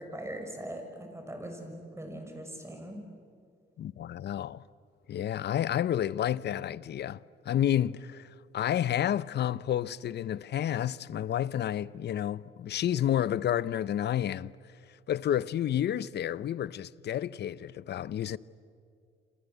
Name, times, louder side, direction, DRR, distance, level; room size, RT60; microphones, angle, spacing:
voice 1, 0.0-3.0, right 1 dB, 15° right, 6.0 m, -41 dB
voice 2, 3.8-4.6 5.1-7.2 7.5-8.3 8.5-14.5 15.1-18.4, left 11 dB, 60° left, 0.6 m, -30 dB
27.5 x 26.5 x 8.1 m
cardioid pair, 90°, 20 cm